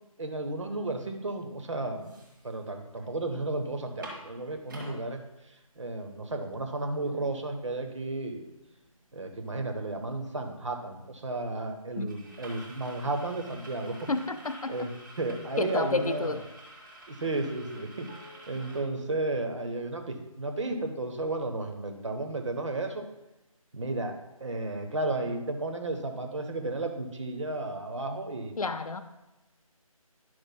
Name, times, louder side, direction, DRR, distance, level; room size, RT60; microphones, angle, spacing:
voice 1, 0.2-2.1 2.4-5.2 5.8-8.5 9.1-14.1 14.7-14.9 15.2-16.4 17.1-23.0 23.7-24.1 24.4-28.5, right 2 dB, 55° right, 5 dB, 1.1 m, -33 dB
sound 1, 1.4-1.5 1.8-3.0 3.4-3.5 3.8-5.0 5.6-5.7 6.0-18.8, right 1 dB, 35° right, 1.6 m, -49 dB
voice 2, 14.1-14.9 15.6-16.5 28.6-29.0, left 3 dB, 75° left, 10 dB, 0.7 m, -30 dB
10.5 x 6.3 x 2.2 m, 0.98 s
figure-of-eight pair, 160°, 19 cm